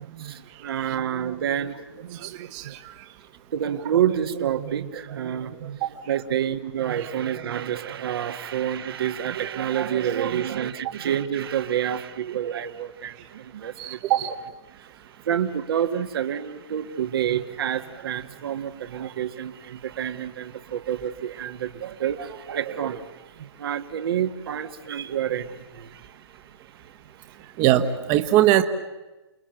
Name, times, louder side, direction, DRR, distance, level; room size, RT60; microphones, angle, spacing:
voice 1, 0.0-2.7 3.5-5.8 6.1-14.4 15.3-23.0 23.6-26.0, right 9 dB, 55° right, 8 dB, 1.7 m, -28 dB
voice 2, 2.2-2.6 5.8-5.9 13.8-14.3 27.6-28.6, right 13 dB, 30° right, 7 dB, 1.5 m, -21 dB
29.5 x 20.5 x 9.1 m, 1.1 s
hypercardioid pair, 140°, 15 cm